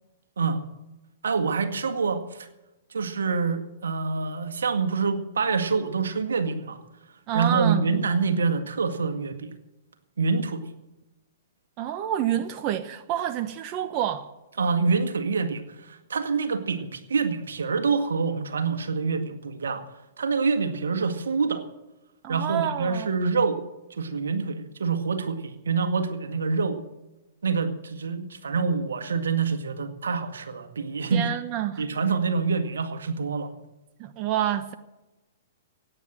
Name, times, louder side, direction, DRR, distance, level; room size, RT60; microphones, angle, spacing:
voice 1, 1.2-2.5 2.9-6.8 7.3-9.5 10.2-10.6 14.6-19.8 20.2-21.6 22.3-23.6 24.0-26.8 27.4-31.3 31.8-33.5, right 5 dB, 80° right, 1.8 m, -26 dB
voice 2, 7.3-7.9 11.8-14.3 22.2-23.1 31.1-31.8 34.0-34.7, right 11 dB, 40° right, 1.0 m, -28 dB
16.5 x 9.5 x 7.7 m
hypercardioid pair, 115°, 0 cm